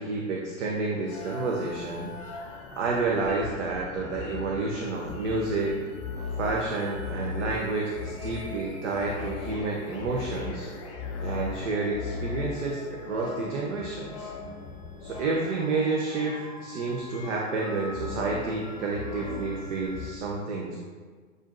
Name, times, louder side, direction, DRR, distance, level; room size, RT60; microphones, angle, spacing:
voice 1, 0.0-2.1 2.8-5.8 6.4-10.7 11.2-14.3 15.0-20.8, right 3 dB, 55° right, -2 dB, 0.7 m, -30 dB
sound 1, 1.1-20.1, left 4 dB, 25° left, 0.3 m, -39 dB
7.1 x 2.5 x 2.5 m, 1.5 s
figure-of-eight pair, 100°, 42 cm